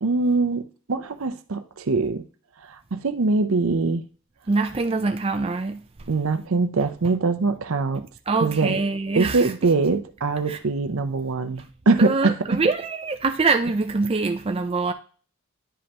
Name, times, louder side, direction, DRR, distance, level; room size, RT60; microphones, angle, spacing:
voice 1, 0.0-2.2 2.6-4.0 6.1-8.1 8.4-8.8 9.2-12.6, right 3 dB, 70° right, 0.6 m, -23 dB
voice 2, 4.5-5.8 8.3-9.5 10.5-10.6 12.0-14.9, right 3 dB, 25° right, 0.5 m, -24 dB
9.9 x 5.3 x 2.9 m
head